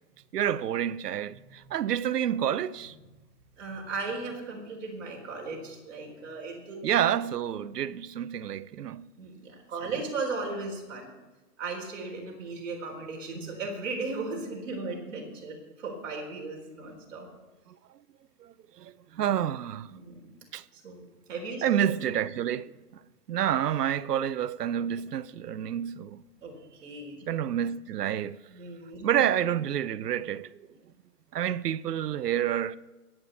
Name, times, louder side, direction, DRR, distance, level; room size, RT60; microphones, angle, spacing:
voice 1, 0.3-2.9 6.8-9.1 13.3-13.5 17.7-17.8 18.4-19.9 20.5-20.6 21.6-22.7 23.3-26.2 27.3-28.4 29.0-30.5 31.3-32.8, right 10 dB, 85° right, 0.7 m, -29 dB
voice 2, 1.4-1.8 3.6-6.8 9.2-11.1 11.6-17.3 19.9-20.3 20.7-21.9 26.4-26.5 26.8-27.2 28.5-29.4, right 3 dB, 55° right, 4.0 m, -37 dB
23.0 x 8.9 x 4.1 m
hypercardioid pair, 165°, 46 cm